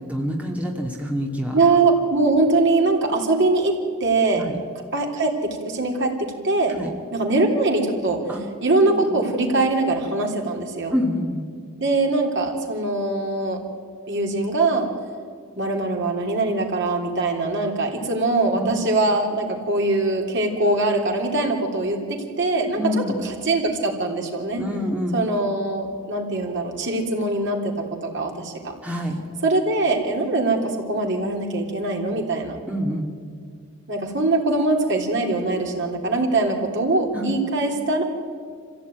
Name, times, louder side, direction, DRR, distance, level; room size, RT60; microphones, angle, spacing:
voice 1, 0.1-1.6 4.4-4.6 6.7-6.9 8.3-8.4 8.9-9.2 10.9-11.4 18.5-18.7 22.8-23.1 24.6-25.2 28.8-29.2 32.7-33.1 37.1-37.3, left 1 dB, 5° right, -1 dB, 2.2 m, -26 dB
voice 2, 1.5-4.4 4.9-6.7 7.1-8.2 8.6-11.0 11.8-13.6 14.1-14.9 15.6-24.6 25.1-27.7 28.0-28.7 29.4-32.6 33.9-38.0, right 2 dB, 55° right, 1 dB, 3.4 m, -22 dB
26.0 x 16.0 x 9.3 m, 2.1 s
head